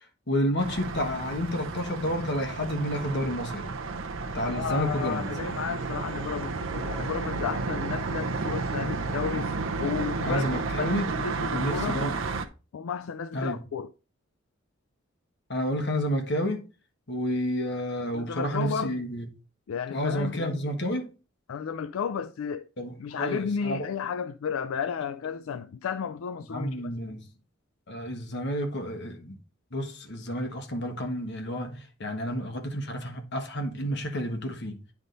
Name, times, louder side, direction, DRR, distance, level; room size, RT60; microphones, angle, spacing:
voice 1, 0.3-3.7 4.3-5.3 9.8-9.9 10.2-11.0 11.5-12.2 13.3-13.6 15.5-16.6 17.1-19.3 19.9-21.1 22.8-23.8 26.5-27.3 27.9-29.4 29.7-34.8, equal, 60° left, 1.4 m, -30 dB
sound 1, 0.6-12.4, right 4 dB, 70° right, 0.7 m, -32 dB
voice 2, 4.4-9.5 9.8-10.5 10.8-12.0 12.7-13.9 18.1-19.0 19.7-20.5 21.5-22.7 23.0-26.9, left 7 dB, 90° left, 0.4 m, -33 dB
9.8 x 3.6 x 3.9 m
head